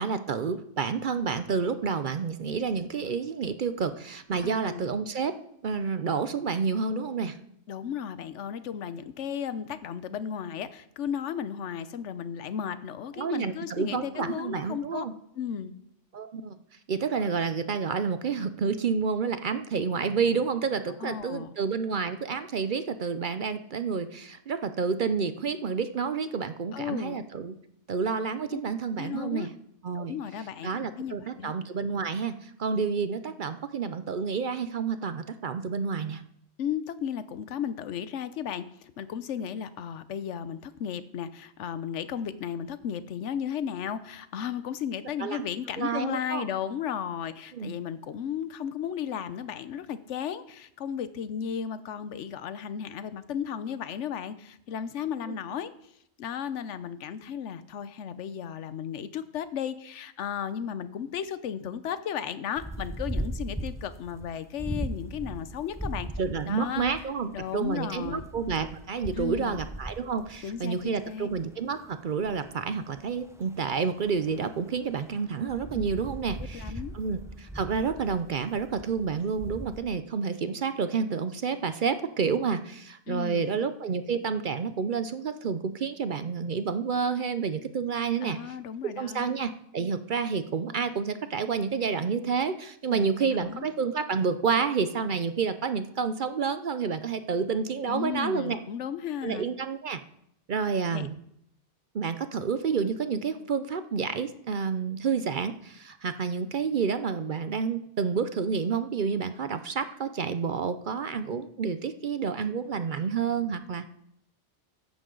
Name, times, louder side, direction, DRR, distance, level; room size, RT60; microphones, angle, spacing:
voice 1, 0.0-5.4 5.6-7.4 13.2-15.1 16.1-16.6 16.9-27.5 27.9-29.5 29.8-30.1 30.6-36.2 39.4-39.5 45.2-45.5 45.8-46.5 47.5-47.7 55.3-55.4 66.2-88.4 89.0-98.6 99.2-100.0 100.5-101.2 101.9-113.9, right 5 dB, 55° right, 11 dB, 0.7 m, -29 dB
voice 2, 4.4-4.8 7.7-15.0 15.3-15.7 21.0-21.5 26.7-27.2 28.5-28.6 29.0-29.5 29.9-31.5 36.6-55.7 56.2-66.1 66.4-66.8 67.3-68.3 69.1-69.6 70.4-71.3 76.5-77.0 83.1-83.6 88.2-89.3 92.9-93.7 97.8-99.5 100.9-101.1, left 8 dB, 85° left, 13 dB, 1.1 m, -34 dB
sound 1, 62.6-79.8, right 1 dB, 5° right, 0.7 m, -39 dB
14.0 x 10.5 x 3.8 m, 0.74 s
omnidirectional pair, 1.2 m